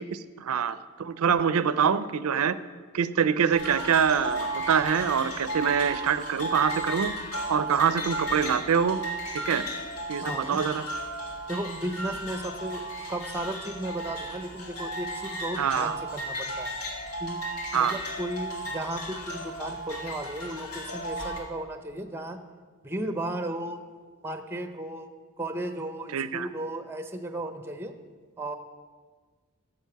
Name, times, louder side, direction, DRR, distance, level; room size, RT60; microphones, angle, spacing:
voice 1, 0.0-2.5 2.9-7.1 7.5-9.0 9.5-9.6 10.1-10.8 15.6-16.0 17.7-17.9 26.1-26.5, right 7 dB, 80° right, 14 dB, 0.5 m, -25 dB
sound 1, 3.5-21.4, right 1 dB, 85° left, 1.9 m, -35 dB
voice 2, 10.2-10.6 11.5-12.8 13.1-16.7 17.2-17.4 17.7-22.4 22.8-23.8 24.2-25.1 25.4-27.9 28.4-28.6, right 1 dB, 10° right, 8 dB, 0.6 m, -35 dB
12.0 x 7.6 x 5.8 m, 1.5 s
head